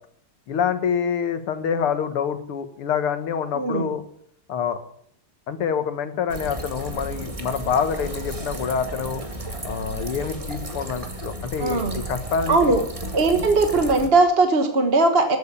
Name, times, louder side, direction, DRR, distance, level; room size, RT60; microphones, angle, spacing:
voice 1, 0.5-4.0 4.5-4.8 5.5-9.2 9.6-12.6, left 7 dB, 85° left, 10 dB, 2.3 m, -26 dB
voice 2, 3.5-3.9 11.6-12.0 12.5-12.8 13.1-15.4, right 3 dB, 30° right, 6 dB, 1.3 m, -19 dB
sound 1, 6.3-14.1, right 1 dB, 15° right, 1.8 m, -33 dB
14.0 x 9.1 x 9.9 m, 0.69 s
omnidirectional pair, 2.3 m